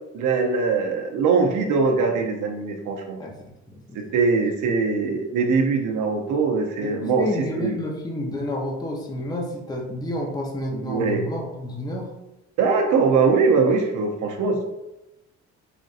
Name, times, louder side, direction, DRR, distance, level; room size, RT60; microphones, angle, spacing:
voice 1, 0.1-3.2 3.9-7.7 10.7-11.2 12.6-14.6, right 4 dB, 80° right, 1 dB, 0.7 m, -22 dB
voice 2, 3.7-4.0 6.8-12.2, left 1 dB, 15° left, 0 dB, 0.7 m, -30 dB
5.0 x 2.6 x 2.4 m, 0.95 s
cardioid pair, 90°, 30 cm